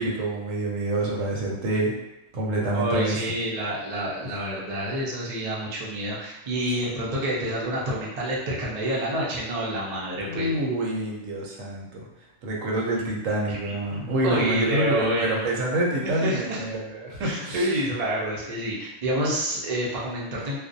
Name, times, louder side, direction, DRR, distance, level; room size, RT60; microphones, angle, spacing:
voice 1, 0.0-1.9 2.3-3.2 10.2-12.1 12.4-17.7, right 1 dB, 75° right, -2 dB, 1.0 m, -27 dB
voice 2, 2.7-10.5 13.5-15.5 16.0-16.6 17.2-20.6, right 1 dB, 50° right, -5 dB, 0.4 m, -28 dB
2.4 x 2.0 x 2.6 m, 0.95 s
omnidirectional pair, 1.4 m